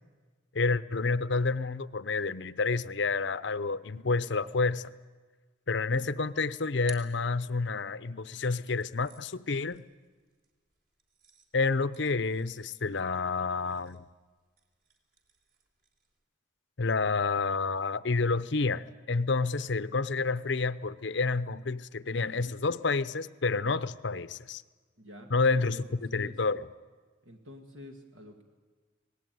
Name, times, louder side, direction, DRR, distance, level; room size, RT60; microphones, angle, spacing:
voice 1, 0.5-4.9 5.7-9.8 11.5-14.0 16.8-24.6 25.3-26.7, left 4 dB, 60° left, 16 dB, 0.8 m, -29 dB
sound 1, 6.8-8.0 8.6-16.2, right 6 dB, 50° right, 3.5 m, -58 dB
voice 2, 25.0-26.4 27.2-28.4, left 1 dB, 75° right, 3 dB, 2.2 m, -49 dB
26.5 x 19.0 x 9.4 m, 1.4 s
head